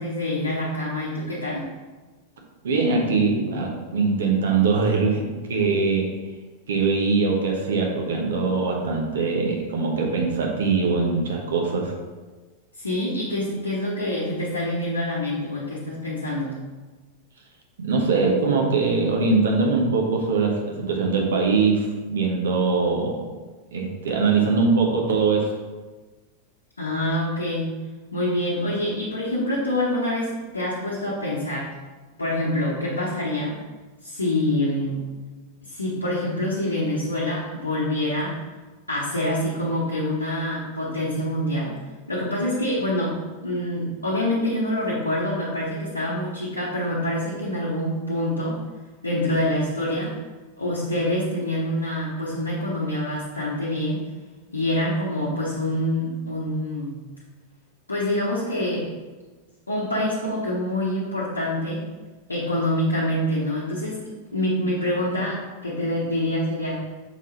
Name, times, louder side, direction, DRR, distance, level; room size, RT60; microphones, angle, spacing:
voice 1, 0.0-1.7 12.8-16.6 26.8-27.7 28.1-31.7 32.2-33.5 34.0-35.0 35.7-38.3 38.9-41.7 42.1-43.1 43.4-48.6 49.0-50.1 50.6-54.0 54.5-56.9 57.9-58.9 59.7-61.8 62.3-64.0 64.3-66.8, left 1 dB, 80° left, -6 dB, 1.0 m, -26 dB
voice 2, 2.6-5.2 5.5-6.1 6.7-11.9 17.8-23.2 23.7-25.5, right 4 dB, 65° right, 0 dB, 1.1 m, -22 dB
6.3 x 3.7 x 4.2 m, 1.3 s
figure-of-eight pair, 90°, 0 cm